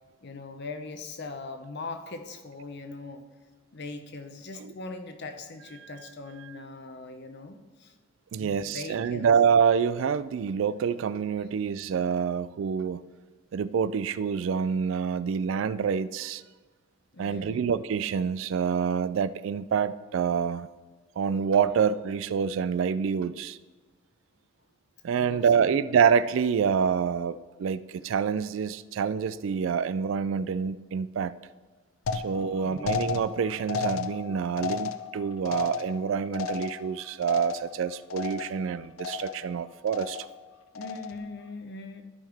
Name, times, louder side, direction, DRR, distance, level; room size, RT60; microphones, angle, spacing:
voice 1, 0.2-3.2 3.7-8.0 8.4-9.4 11.4-11.5 17.1-17.7 25.1-25.8 32.5-33.0 40.7-42.0, left 3 dB, 55° left, 7 dB, 0.8 m, -41 dB
voice 2, 8.3-13.0 13.5-16.4 17.2-20.7 21.2-23.6 25.0-31.4 32.1-40.3, right 6 dB, 65° right, 16 dB, 0.3 m, -27 dB
sound 1, 32.1-37.8 38.1-38.7 39.0-39.5 39.9-40.4 40.8-41.3, left 5 dB, 75° left, 0.5 m, -34 dB
13.5 x 5.6 x 3.4 m, 1.3 s
head